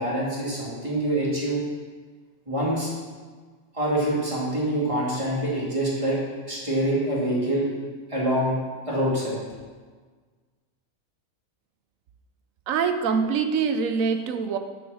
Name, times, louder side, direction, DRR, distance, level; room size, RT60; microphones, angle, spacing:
voice 1, 0.0-1.6 2.5-2.9 3.7-6.2 6.5-7.7 8.1-8.6 8.9-9.4, right 1 dB, 25° right, -6 dB, 2.4 m, -25 dB
voice 2, 12.7-14.6, right 6 dB, 75° right, 8 dB, 1.1 m, -24 dB
7.1 x 6.2 x 6.3 m, 1.5 s
omnidirectional pair, 1.4 m